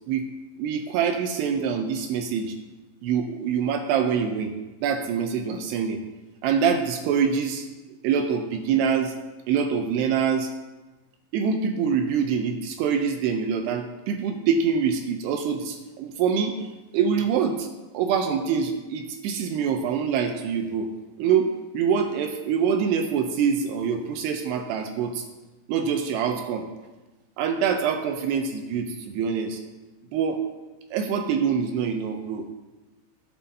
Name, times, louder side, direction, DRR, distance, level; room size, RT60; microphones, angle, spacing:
voice 1, 0.6-2.5 3.0-4.5 4.8-6.0 6.4-7.7 8.0-9.1 9.5-10.5 11.3-16.6 16.9-17.7 17.9-20.9 21.2-21.5 21.7-25.2 25.7-26.7 27.4-29.6 30.1-30.4 30.9-32.5, right 7 dB, 80° right, 5 dB, 2.5 m, -25 dB
16.0 x 8.3 x 2.7 m, 1.2 s
omnidirectional pair, 5.3 m